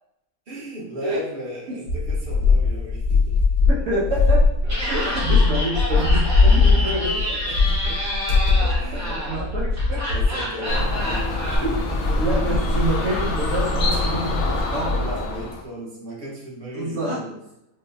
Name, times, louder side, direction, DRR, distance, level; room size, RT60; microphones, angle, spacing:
voice 1, 0.5-3.4 5.0-5.2 7.5-8.0 8.8-9.3 10.1-12.2 14.9-17.4, right 1 dB, 45° right, -5 dB, 1.0 m, -36 dB
sound 1, 1.9-10.3, left 4 dB, 85° left, 1.1 m, -19 dB
voice 2, 3.6-4.4 4.8-7.4 8.6-9.0 9.3-10.0 11.6-11.7 12.2-15.0 16.7-17.2, right 1 dB, 70° right, -7 dB, 1.4 m, -27 dB
Laughter, 4.6-11.6, equal, 15° right, 0.8 m, -29 dB
sound 2, 10.7-15.6, left 2 dB, 65° left, 0.8 m, -24 dB
4.5 x 2.1 x 2.4 m, 0.84 s
omnidirectional pair, 1.5 m